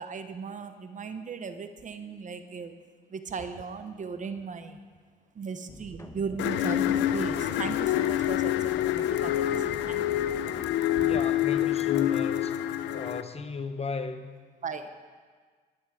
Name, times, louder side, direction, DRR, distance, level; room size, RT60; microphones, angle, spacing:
voice 1, 0.0-2.7 3.1-4.8 5.4-10.1 11.0-11.2 14.6-14.9, right 5 dB, 45° right, 9 dB, 1.0 m, -37 dB
sound 1, 5.7-10.7, left 2 dB, 15° left, 1.0 m, -46 dB
sound 2, 6.4-13.2, left 12 dB, 90° left, 0.5 m, -27 dB
voice 2, 11.0-12.6 12.9-14.3, left 4 dB, 35° left, 9 dB, 0.9 m, -35 dB
20.5 x 7.3 x 5.0 m, 1.5 s
cardioid pair, 80°, 18 cm